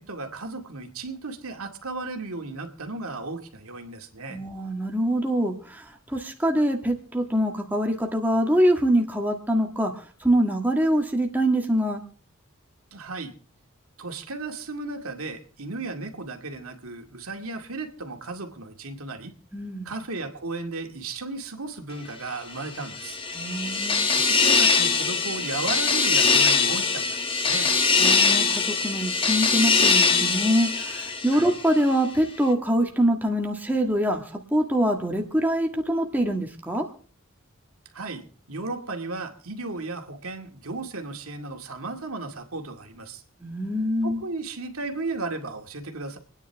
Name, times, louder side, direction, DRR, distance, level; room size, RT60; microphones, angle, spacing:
voice 1, 0.0-4.4 12.9-13.3 14.0-19.3 19.8-23.2 24.1-27.2 27.5-27.7 31.3-31.5 37.9-43.2 44.0-46.2, right 3 dB, 90° right, 4 dB, 2.2 m, -35 dB
voice 2, 4.3-12.0 19.5-19.9 23.3-24.1 28.0-34.2 34.5-36.8 43.4-44.2, equal, 10° right, 2 dB, 1.7 m, -24 dB
sound 1, 22.7-31.8, left 4 dB, 25° left, 1.3 m, -22 dB
28.0 x 9.9 x 3.5 m, 0.41 s
head